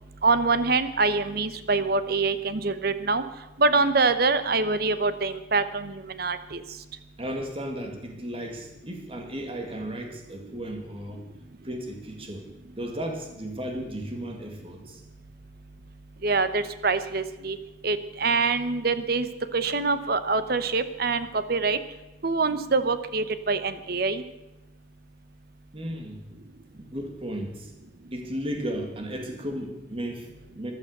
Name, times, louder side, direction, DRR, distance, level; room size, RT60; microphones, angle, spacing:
voice 1, 0.2-3.2 3.6-6.6 16.2-17.6 17.8-21.8 22.2-24.2, right 4 dB, 50° right, 12 dB, 0.9 m, -25 dB
voice 2, 7.2-11.3 11.6-12.4 12.8-15.0 25.7-26.2 26.7-27.7 28.1-30.7, equal, 30° right, 3 dB, 2.1 m, -35 dB
14.5 x 11.5 x 6.7 m, 1.0 s
head